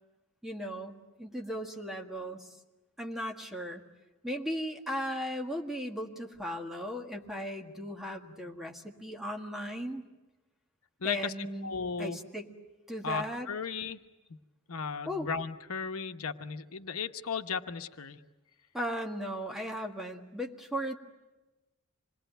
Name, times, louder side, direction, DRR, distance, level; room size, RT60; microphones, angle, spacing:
voice 1, 0.4-2.5 3.0-3.8 4.2-10.0 11.0-12.5 12.9-13.5 15.1-15.3 18.7-21.0, equal, ahead, 1 dB, 1.7 m, -37 dB
voice 2, 11.0-12.2 13.0-14.0 14.3-14.4 14.7-18.2, left 5 dB, 90° left, 7 dB, 1.0 m, -36 dB
27.0 x 21.0 x 9.1 m, 1.1 s
head